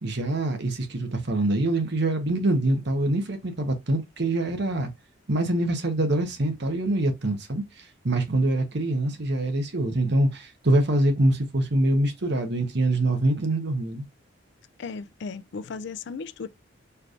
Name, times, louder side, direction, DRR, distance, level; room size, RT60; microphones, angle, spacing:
voice 1, 0.0-4.9 5.3-14.0, right 1 dB, 60° right, 1.1 m, -24 dB
voice 2, 14.8-16.5, left 5 dB, 60° left, 0.4 m, -36 dB
4.5 x 3.3 x 2.5 m
head